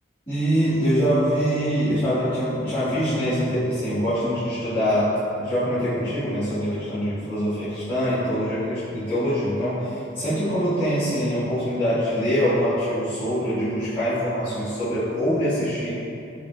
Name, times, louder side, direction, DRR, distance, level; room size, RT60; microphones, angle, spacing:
voice 1, 0.3-5.1 5.4-15.9, equal, 25° left, -18 dB, 1.5 m, -24 dB
5.0 x 2.6 x 2.3 m, 2.7 s
head